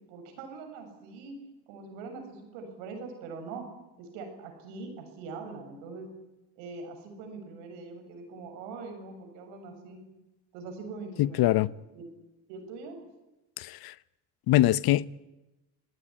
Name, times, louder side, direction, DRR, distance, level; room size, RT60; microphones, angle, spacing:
voice 1, 0.1-1.4 1.7-3.6 4.0-6.1 6.6-10.0 10.5-11.7 11.9-12.1 12.5-13.0, right 4 dB, 90° right, 7.2 m, -42 dB
voice 2, 11.2-11.7 13.6-13.9 14.5-15.1, left 15 dB, 60° left, 0.9 m, -23 dB
28.5 x 17.5 x 10.0 m
cardioid pair, 105°, 42 cm